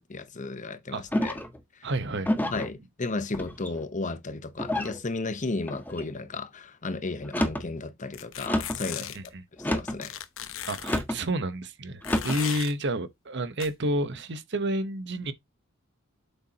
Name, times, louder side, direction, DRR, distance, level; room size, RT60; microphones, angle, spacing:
voice 1, 0.0-1.4 2.5-9.2 9.6-10.2, left 3 dB, 35° left, 0.9 m, -34 dB
sound 1, 1.1-1.6 2.2-2.7 3.3-3.9 4.6-5.0 5.7-6.1 7.2-7.7 8.5-8.9 9.6-10.0 10.8-11.2 12.0-12.4, left 1 dB, 10° left, 1.4 m, -29 dB
voice 2, 1.8-2.6 9.1-9.4 10.7-15.3, right 1 dB, 55° right, 1.1 m, -30 dB
sound 2, 8.1-9.3 10.0-11.0 12.0-12.7 13.6-13.7, left 10 dB, 70° left, 1.0 m, -36 dB
8.2 x 6.9 x 2.9 m
head